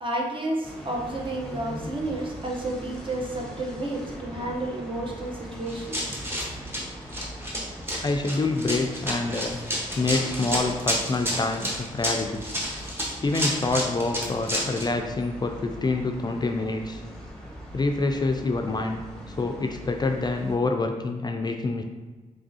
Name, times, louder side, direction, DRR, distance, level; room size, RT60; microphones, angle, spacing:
voice 1, 0.0-6.2, right 1 dB, 35° right, 0 dB, 0.8 m, -31 dB
sound 1, 0.6-20.6, equal, 5° left, 0.9 m, -41 dB
Run, 5.7-14.9, equal, 15° right, 1.1 m, -30 dB
voice 2, 8.0-9.6 10.0-12.4 13.2-17.0 17.7-19.0 19.3-21.8, left 3 dB, 30° left, 4 dB, 0.3 m, -26 dB
3.5 x 3.3 x 2.7 m, 1.3 s
cardioid pair, 50°, 14 cm